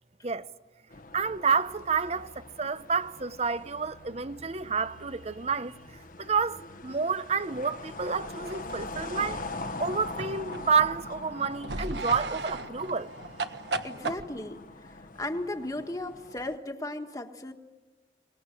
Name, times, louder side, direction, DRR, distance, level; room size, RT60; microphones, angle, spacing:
sound 1, 0.9-16.6, left 2 dB, 50° left, 1.2 m, -43 dB
voice 1, 1.1-5.8 6.2-9.4 9.8-13.1, right 5 dB, 35° right, 0.7 m, -29 dB
sound 2, 8.4-11.1 11.6-14.2, right 2 dB, 70° right, 1.3 m, -37 dB
voice 2, 13.8-14.9 15.2-17.5, left 1 dB, 20° left, 1.5 m, -36 dB
24.5 x 19.5 x 9.9 m
head